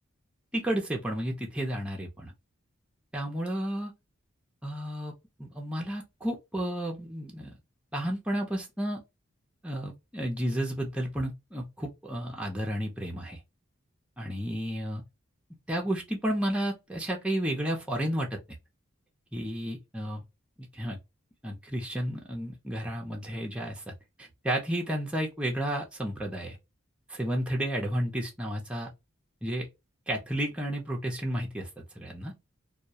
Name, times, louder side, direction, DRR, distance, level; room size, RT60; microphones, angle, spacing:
voice 1, 0.5-2.3 3.1-3.9 4.6-5.1 5.4-7.5 7.9-9.0 9.6-13.4 14.2-15.0 15.7-18.4 19.3-20.2 20.7-21.0 21.4-23.9 24.2-26.6 27.1-28.9 29.4-29.7 30.1-31.7 32.0-32.3, right 1 dB, 5° right, 0.5 m, -32 dB
2.3 x 2.2 x 2.7 m
head